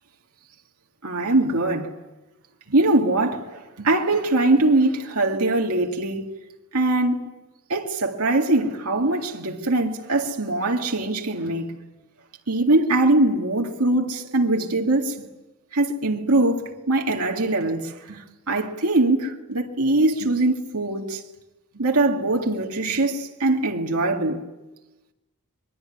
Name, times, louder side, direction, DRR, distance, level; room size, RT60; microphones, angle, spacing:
voice 1, 1.0-1.9 2.7-6.3 6.7-7.2 7.7-11.8 12.5-15.1 15.7-18.2 18.5-21.2 21.7-24.4, right 2 dB, 75° right, 2.2 m, -22 dB
25.0 x 22.0 x 9.9 m
head